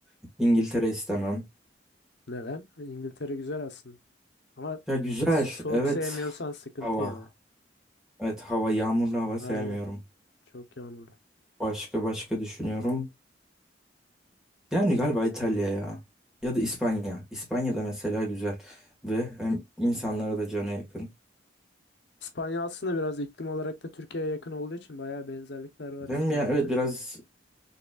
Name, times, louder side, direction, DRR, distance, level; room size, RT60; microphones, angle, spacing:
voice 1, 0.4-1.4 4.9-6.2 6.8-7.1 8.2-10.0 11.6-13.1 14.7-16.0 16.4-21.1 26.1-27.2, equal, 5° right, 1.6 m, -28 dB
voice 2, 2.3-4.0 4.6-4.8 5.6-7.3 9.4-9.8 10.5-11.1 22.2-26.5, left 2 dB, 70° left, 0.8 m, -35 dB
4.0 x 3.0 x 2.3 m
head